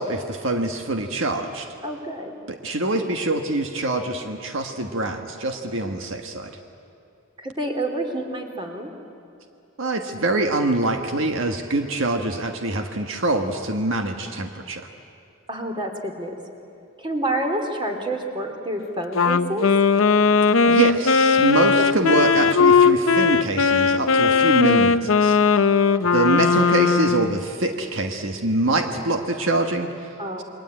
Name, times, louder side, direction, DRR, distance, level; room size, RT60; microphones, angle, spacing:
voice 1, 0.0-1.7 2.5-6.5 9.8-14.9 20.7-25.4 26.1-30.1, right 2 dB, 75° right, 4 dB, 1.5 m, -24 dB
voice 2, 1.8-2.4 7.4-8.9 15.5-16.3 17.0-19.7 25.4-25.7 30.2-30.4, right 1 dB, 25° right, 4 dB, 3.0 m, -28 dB
Wind instrument woodwind instrument, 19.1-27.4, left 5 dB, 85° left, 0.7 m, -18 dB
29.0 x 22.5 x 9.0 m, 2.7 s
head